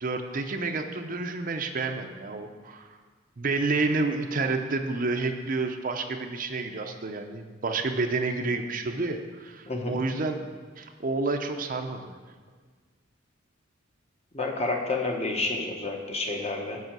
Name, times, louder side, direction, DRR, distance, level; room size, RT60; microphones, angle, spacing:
voice 1, 0.0-2.9 3.4-10.5 10.8-12.2, right 3 dB, 45° right, 5 dB, 0.6 m, -29 dB
voice 2, 9.7-10.0 14.3-16.8, left 2 dB, 30° left, 1 dB, 1.0 m, -29 dB
8.0 x 5.5 x 7.3 m, 1.5 s
head